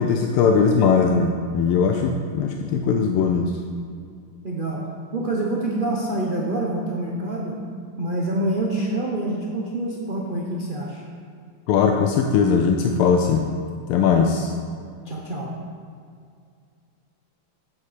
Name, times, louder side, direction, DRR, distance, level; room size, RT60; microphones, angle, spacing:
voice 1, 0.0-3.5 11.7-13.4 13.9-14.5, left 6 dB, 90° left, 4 dB, 1.5 m, -19 dB
voice 2, 4.4-4.8 5.1-7.6 8.0-11.0 14.0-14.4 15.1-15.5, right 1 dB, 90° right, -2 dB, 0.4 m, -26 dB
8.4 x 8.0 x 5.0 m, 2.2 s
omnidirectional pair, 2.3 m